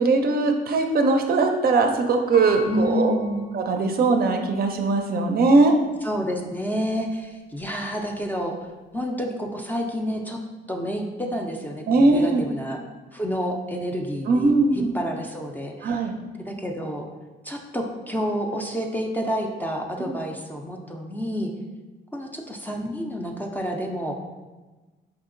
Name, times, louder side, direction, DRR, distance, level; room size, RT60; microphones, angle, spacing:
voice 1, 0.0-3.1 3.5-5.7 11.9-12.5 14.3-14.9 15.8-16.2 20.0-20.2, right 3 dB, 50° right, 4 dB, 0.4 m, -20 dB
Piano, 2.3-4.3 4.9-5.0, left 3 dB, 85° left, 0.9 m, -40 dB
voice 2, 2.7-3.4 6.0-8.6 8.9-10.4 10.7-12.8 13.1-16.0 16.5-17.1 17.4-21.5 22.1-24.1, equal, 10° left, 1 dB, 0.4 m, -29 dB
4.7 x 2.7 x 2.5 m, 1.2 s
cardioid pair, 90°, 20 cm